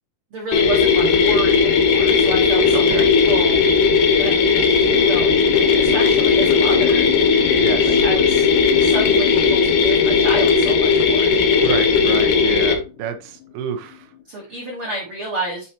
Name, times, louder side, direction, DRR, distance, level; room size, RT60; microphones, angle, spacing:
voice 1, 0.3-3.6 4.2-7.1 7.8-8.5 8.8-11.3 14.3-15.7, right 2 dB, 65° right, -3 dB, 1.3 m, -30 dB
sound 1, 0.5-12.7, left 5 dB, 65° left, 2.1 m, -16 dB
voice 2, 2.7-3.1 7.6-8.0 11.6-14.1, right 8 dB, 85° right, 6 dB, 2.7 m, -29 dB
sound 2, 4.8-14.2, left 10 dB, 85° left, 2.9 m, -32 dB
7.7 x 4.2 x 2.9 m, 0.33 s
omnidirectional pair, 4.5 m